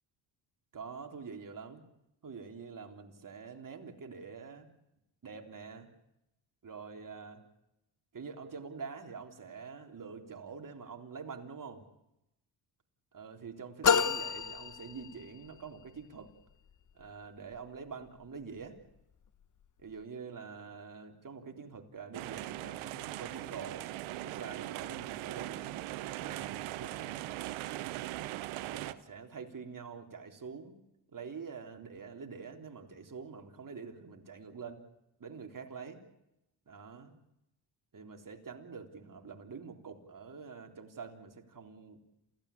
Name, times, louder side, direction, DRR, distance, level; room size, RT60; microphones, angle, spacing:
voice 1, 0.7-1.8 2.2-4.7 5.2-5.9 6.6-7.4 8.1-11.8 13.1-16.3 17.0-18.8 19.8-23.8 24.2-25.8 26.2-27.3 28.6-30.7 31.1-34.8 35.2-36.0 36.7-37.2 37.9-42.0, right 5 dB, 40° right, 4 dB, 3.7 m, -46 dB
sound 1, 13.8-15.5, left 6 dB, 40° left, 1.1 m, -29 dB
sound 2, 22.1-28.9, right 16 dB, 85° right, 1.0 m, -40 dB
28.0 x 16.0 x 8.5 m, 0.87 s
supercardioid pair, 65°, 48 cm